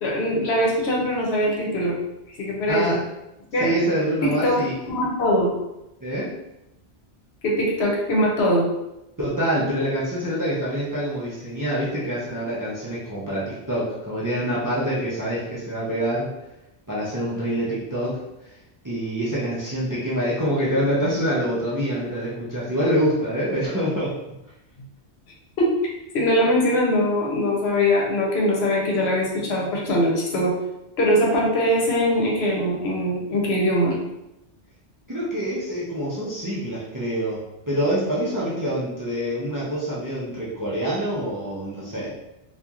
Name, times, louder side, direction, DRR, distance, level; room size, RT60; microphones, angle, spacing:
voice 1, 0.0-1.9 2.4-3.0 3.5-3.7 4.2-4.6 4.9-5.5 7.4-8.7 25.6-25.7 26.1-30.5 31.0-33.9, equal, 70° left, -2 dB, 1.0 m, -21 dB
voice 2, 3.6-4.7 6.0-6.3 9.2-16.3 16.9-18.2 18.8-24.1 35.1-42.1, equal, 25° right, -8 dB, 0.4 m, -26 dB
2.8 x 2.4 x 2.4 m, 0.91 s
omnidirectional pair, 1.1 m